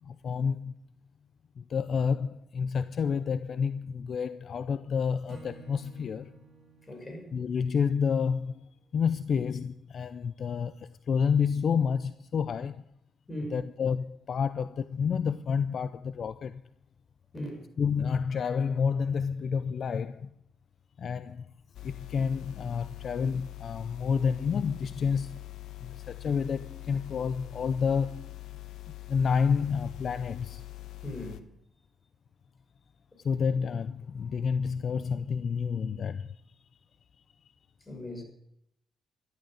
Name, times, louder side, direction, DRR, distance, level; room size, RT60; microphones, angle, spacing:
voice 1, 0.0-0.7 1.6-6.3 7.3-12.8 13.5-16.6 17.8-20.3 21.0-21.5 21.8-25.4 25.8-28.3 29.1-30.6 33.2-36.4, left 6 dB, 55° left, 0.5 m, -29 dB
Acoustic guitar / Strum, 5.3-8.6, right 6 dB, 45° right, 6.7 m, -54 dB
voice 2, 6.9-7.3 13.3-13.5 17.3-17.7 31.0-31.4 37.9-38.2, left 1 dB, 20° left, 6.4 m, -38 dB
sound 1, 21.7-31.4, left 19 dB, 75° left, 1.0 m, -44 dB
13.5 x 12.5 x 6.5 m
cardioid pair, 90°, 0 cm